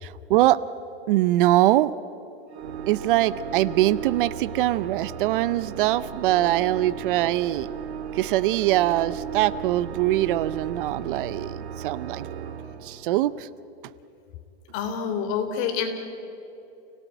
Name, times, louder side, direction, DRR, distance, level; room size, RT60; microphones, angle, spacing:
voice 1, 0.0-0.6 1.1-1.9 2.9-7.7 8.1-12.3 12.8-13.5, right 15 dB, 55° right, 17 dB, 0.6 m, -23 dB
Organ, 2.5-13.4, right 7 dB, 80° right, 1.9 m, -36 dB
voice 2, 14.7-15.9, left 7 dB, 40° left, 5 dB, 3.4 m, -27 dB
29.5 x 17.5 x 9.1 m, 2.8 s
supercardioid pair, 160°, 33 cm